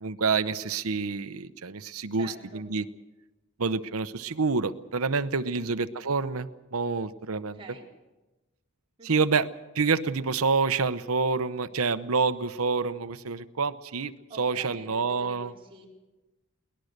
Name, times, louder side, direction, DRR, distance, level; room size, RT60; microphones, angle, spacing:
voice 1, 0.0-2.8 3.6-7.6 9.0-9.5 9.7-15.5, right 4 dB, 90° right, 13 dB, 0.9 m, -27 dB
voice 2, 2.1-2.6 5.4-5.7 7.3-7.9 9.0-9.3 14.3-15.9, right 2 dB, 25° right, -3 dB, 4.4 m, -47 dB
22.0 x 19.0 x 6.7 m, 1.1 s
head